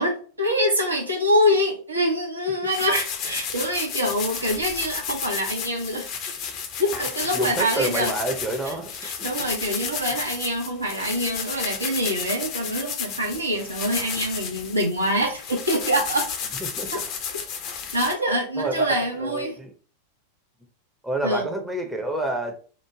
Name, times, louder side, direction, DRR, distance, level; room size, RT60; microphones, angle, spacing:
voice 1, 0.0-6.1 6.8-8.1 8.7-8.8 9.0-16.3 16.9-17.0 17.9-19.6 21.2-21.5, equal, 80° right, 0 dB, 0.7 m, -25 dB
sound 1, 2.7-18.1, left 6 dB, 40° left, 0.6 m, -32 dB
voice 2, 7.3-9.1 16.6-17.1 18.6-19.7 21.0-22.6, right 1 dB, 5° right, 2 dB, 0.6 m, -28 dB
3.1 x 2.1 x 3.6 m, 0.40 s
figure-of-eight pair, 90°, 0 cm